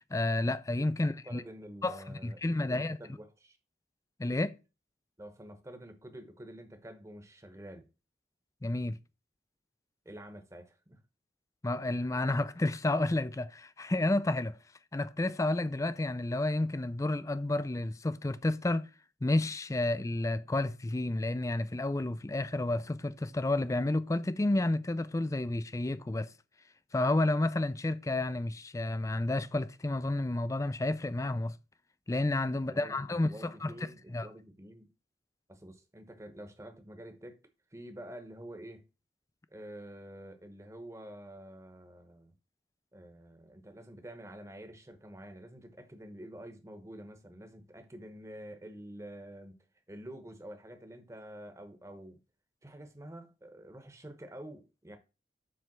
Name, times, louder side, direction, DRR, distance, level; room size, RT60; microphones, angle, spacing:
voice 1, 0.1-1.4 1.8-3.0 4.2-4.6 8.6-9.0 11.6-14.6 14.9-18.9 19.2-26.3 26.9-31.6 32.1-33.7 34.1-34.3, left 2 dB, 15° left, 0.4 m, -31 dB
voice 2, 1.2-3.6 5.2-7.9 10.0-11.0 32.6-34.9 35.5-37.4 37.7-38.8 39.5-42.3 42.9-49.6 49.9-52.2 52.6-55.0, right 1 dB, 15° right, 1.0 m, -48 dB
7.6 x 3.3 x 6.0 m
head